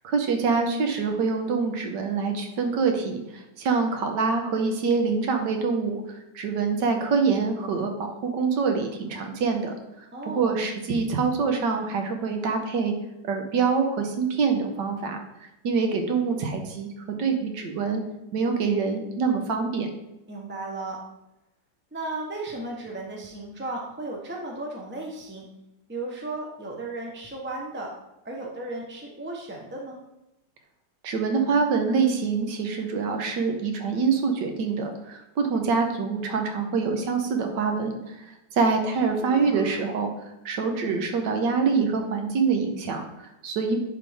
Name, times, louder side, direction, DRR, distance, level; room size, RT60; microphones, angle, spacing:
voice 1, 0.0-6.0 6.3-9.7 10.3-12.9 13.3-16.9 17.2-18.0 18.3-19.9 31.0-40.1 40.4-43.8, right 5 dB, 80° right, 4 dB, 1.6 m, -25 dB
voice 2, 10.1-10.6 20.3-21.0 21.9-25.4 25.9-27.9 28.2-30.0 39.2-39.8, right 2 dB, 15° right, -1 dB, 0.4 m, -35 dB
10.0 x 3.9 x 3.5 m, 0.91 s
omnidirectional pair, 1.9 m